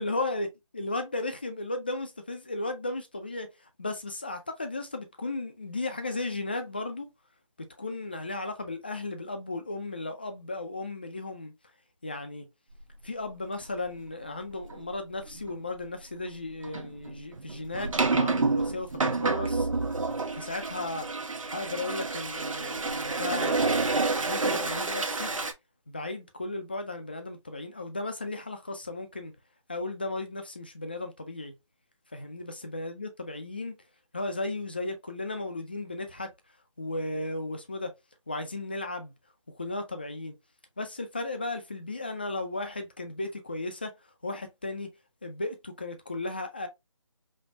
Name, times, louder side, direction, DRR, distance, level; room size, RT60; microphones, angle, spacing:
voice 1, 0.0-7.1 7.6-11.5 12.0-12.5 13.0-19.7 20.3-21.1 21.5-25.3 25.9-29.3 29.7-31.5 32.1-33.7 34.1-36.3 36.8-37.9 38.3-39.1 39.5-40.3 40.8-43.9 44.2-44.9 45.2-46.7, left 2 dB, 20° left, 0.4 m, -35 dB
sound 1, 14.7-14.8 15.3-15.5 16.6-25.5, right 3 dB, 85° right, 0.8 m, -29 dB
5.2 x 2.1 x 2.6 m
figure-of-eight pair, 165°, 17 cm